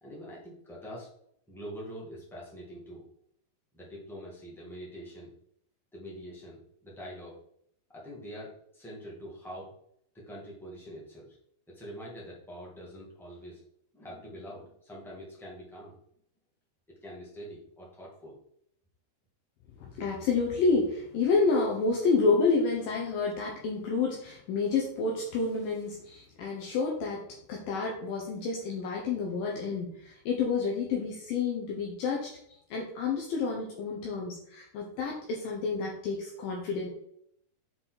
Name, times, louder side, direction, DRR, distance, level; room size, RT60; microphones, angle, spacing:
voice 1, 0.0-1.1 1.5-3.0 3.7-5.3 5.9-7.4 7.9-9.7 10.1-11.4 11.7-13.6 13.9-16.0 17.0-18.4, equal, ahead, -5 dB, 0.8 m, -44 dB
voice 2, 19.8-32.3 32.7-36.9, left 4 dB, 70° left, -1 dB, 2.5 m, -29 dB
7.5 x 4.7 x 4.0 m, 0.69 s
omnidirectional pair, 4.7 m